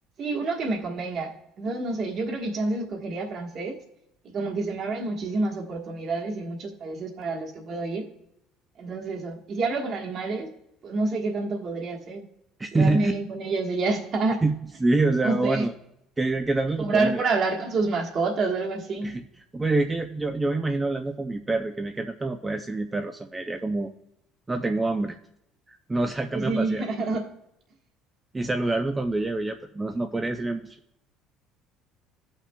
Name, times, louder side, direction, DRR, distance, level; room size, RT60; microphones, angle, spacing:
voice 1, 0.2-3.8 4.3-8.1 8.8-10.5 10.8-12.2 12.7-14.4 15.2-15.7 16.8-19.2 26.3-27.3, right 3 dB, 40° right, 2 dB, 1.3 m, -28 dB
voice 2, 12.6-13.1 14.4-14.5 14.8-15.7 16.2-17.2 19.0-19.2 19.5-23.9 24.5-25.2 25.9-26.8 28.3-30.8, right 2 dB, 10° right, 6 dB, 0.3 m, -26 dB
15.5 x 5.8 x 2.2 m, 0.80 s
cardioid pair, 155°, 0 cm